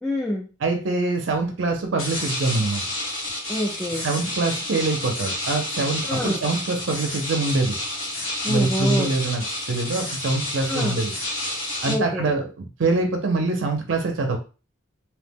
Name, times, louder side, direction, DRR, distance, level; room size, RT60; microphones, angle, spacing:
voice 1, 0.0-0.5 3.5-4.1 6.1-6.4 8.4-9.1 10.6-11.0 11.8-12.3, left 1 dB, 5° left, -4 dB, 0.4 m, -26 dB
voice 2, 0.6-2.8 4.0-7.8 8.5-11.1 11.8-14.4, right 3 dB, 65° right, 4 dB, 0.5 m, -24 dB
sound 1, 2.0-11.9, left 1 dB, 80° left, 1.2 m, -30 dB
2.8 x 2.1 x 3.4 m, 0.34 s
head